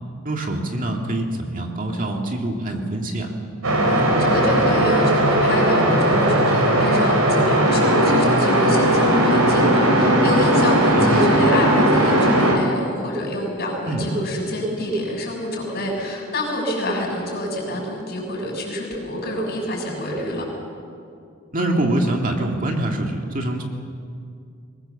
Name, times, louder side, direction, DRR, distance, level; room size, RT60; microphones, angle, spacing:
voice 1, 0.2-3.3 10.9-11.3 13.9-14.1 21.5-23.6, right 1 dB, 40° right, 2 dB, 2.1 m, -24 dB
sound 1, 3.6-12.6, right 1 dB, 80° right, 4.1 m, -17 dB
voice 2, 3.9-20.5, equal, 50° left, -1 dB, 6.7 m, -26 dB
23.0 x 20.0 x 7.1 m, 2.4 s
head